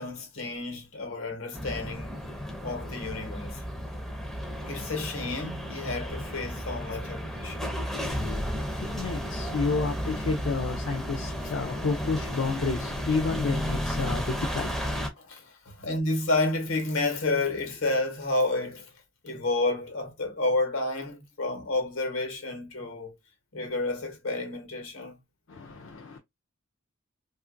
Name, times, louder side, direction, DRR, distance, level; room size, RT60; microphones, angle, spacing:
voice 1, 0.0-2.2 2.6-3.6 4.7-7.7 15.2-18.9 19.2-23.1 23.5-25.2, left 2 dB, 80° left, 1.1 m, -30 dB
sound 1, 1.5-15.1, equal, ahead, 0.5 m, -33 dB
voice 2, 8.8-14.7 25.5-26.2, left 4 dB, 65° left, 0.4 m, -30 dB
2.8 x 2.4 x 2.5 m
head